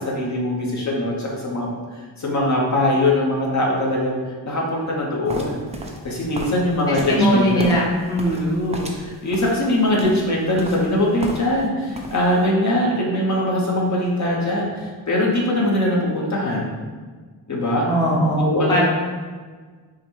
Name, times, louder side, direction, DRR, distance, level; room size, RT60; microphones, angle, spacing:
voice 1, 0.0-1.7 2.2-5.6 6.0-7.7 8.3-16.7 17.5-17.9 18.4-18.8, left 1 dB, 40° left, -3 dB, 0.8 m, -22 dB
sound 1, 5.3-11.7 11.9-12.4, right 1 dB, 15° right, 0.4 m, -35 dB
voice 2, 6.9-8.4 17.9-18.4 18.7-18.8, equal, 10° left, -5 dB, 0.7 m, -20 dB
5.6 x 2.1 x 3.1 m, 1.5 s
wide cardioid pair, 125°, 44 cm